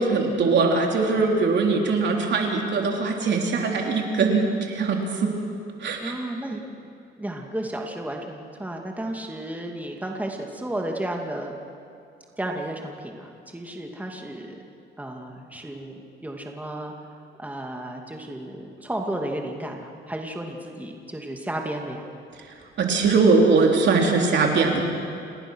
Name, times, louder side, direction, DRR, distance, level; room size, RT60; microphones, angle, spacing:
voice 1, 0.0-5.3 5.8-6.1 22.8-24.8, right 4 dB, 60° right, 1 dB, 3.8 m, -21 dB
voice 2, 6.0-6.9 7.2-11.5 12.4-14.6 15.0-16.9 17.4-22.0, right 1 dB, 10° right, 1 dB, 2.5 m, -33 dB
29.0 x 18.5 x 6.4 m, 2.4 s
cardioid pair, 90°, 20 cm